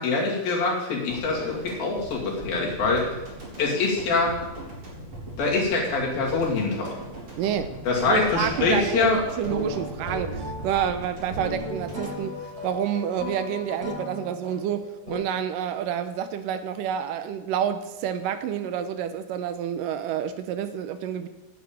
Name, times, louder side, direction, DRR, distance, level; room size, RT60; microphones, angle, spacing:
voice 1, 0.0-3.1 3.6-4.3 5.4-7.0 7.9-9.2, left 3 dB, 90° left, -3 dB, 4.5 m, -24 dB
sound 1, 1.1-13.3 13.6-13.7, right 1 dB, 40° right, 4.5 m, -40 dB
voice 2, 7.4-7.7 8.1-21.3, right 9 dB, 80° right, 10 dB, 2.2 m, -29 dB
Gentle Waters, 8.4-15.2, equal, 15° right, 5.4 m, -36 dB
9.8 x 8.2 x 8.9 m, 1.0 s
omnidirectional pair, 4.1 m